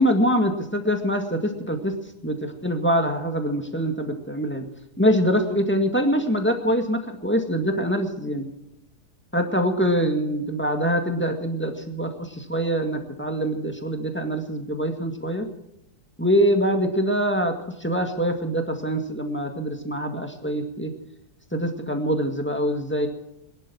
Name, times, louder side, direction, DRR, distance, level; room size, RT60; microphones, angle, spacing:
voice 1, 0.0-1.9 2.2-4.7 5.0-8.5 9.3-15.5 16.2-20.9 21.5-23.1, equal, 5° left, 4 dB, 1.8 m, -24 dB
21.5 x 11.0 x 6.1 m, 0.83 s
omnidirectional pair, 1.7 m